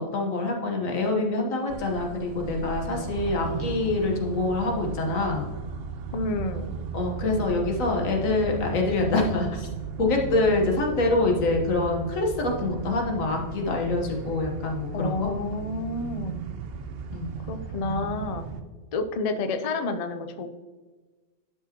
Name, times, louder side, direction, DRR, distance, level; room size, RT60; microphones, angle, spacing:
voice 1, 0.0-5.4 6.9-9.7 10.0-15.3 17.1-17.3, left 2 dB, 85° left, 1 dB, 1.6 m, -25 dB
sound 1, 1.7-18.6, right 5 dB, 60° right, 0.7 m, -36 dB
voice 2, 6.1-6.7 14.9-16.4 17.5-18.4 18.9-20.5, left 3 dB, 55° left, 8 dB, 0.4 m, -29 dB
11.5 x 5.0 x 2.9 m, 1.3 s
omnidirectional pair, 1.3 m